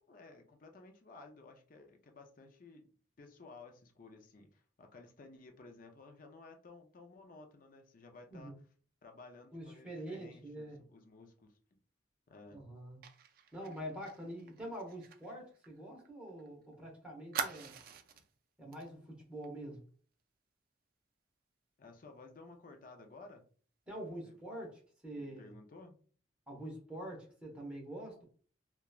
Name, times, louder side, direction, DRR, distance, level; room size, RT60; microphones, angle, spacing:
voice 1, 0.0-2.9 3.2-8.5 9.0-11.5 12.3-12.6 21.8-23.4 24.2-24.3 25.1-26.0, left 3 dB, 45° left, 4 dB, 0.5 m, -55 dB
voice 2, 9.5-10.8 12.5-13.0 13.5-17.8 18.6-19.8 23.9-25.5 26.5-28.2, right 1 dB, 5° right, -2 dB, 0.8 m, -45 dB
Fire, 13.0-16.5 16.7-16.8 17.3-18.3 18.7-18.9 19.2-19.4, right 6 dB, 50° right, 0.3 m, -44 dB
2.9 x 2.2 x 2.3 m, 0.43 s
head